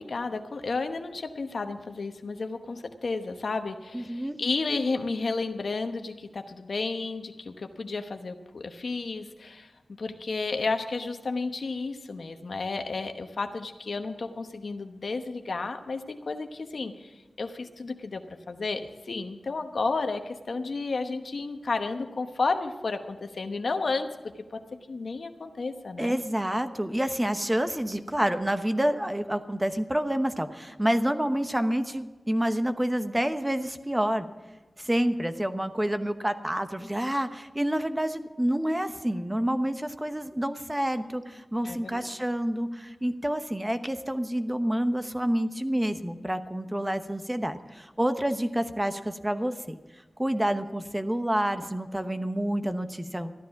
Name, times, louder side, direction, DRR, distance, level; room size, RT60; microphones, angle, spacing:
voice 1, 0.0-24.1 24.5-26.2 41.6-42.1, left 3 dB, 75° left, 7 dB, 1.0 m, -32 dB
voice 2, 3.9-4.4 26.0-34.3 34.8-49.8 50.2-53.3, right 1 dB, 15° right, 9 dB, 0.9 m, -28 dB
14.0 x 10.5 x 5.9 m, 1.2 s
cardioid pair, 45°, 0 cm